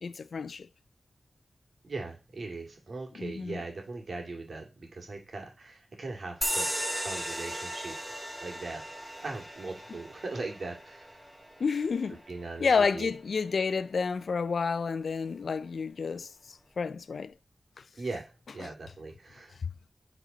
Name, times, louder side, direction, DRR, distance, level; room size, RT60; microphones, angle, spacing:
voice 1, 0.0-0.7 3.2-3.6 11.6-12.2 12.6-17.3 17.8-17.9 18.6-18.7 19.6-19.7, left 5 dB, 90° left, 0.3 m, -30 dB
voice 2, 1.8-8.0 8.4-8.8 9.2-11.2 12.3-13.1 18.0-19.6, right 3 dB, 70° right, 2.2 m, -40 dB
sound 1, 6.4-13.5, equal, 5° right, 1.8 m, -37 dB
8.1 x 4.1 x 5.2 m
wide cardioid pair, 80°, 0 cm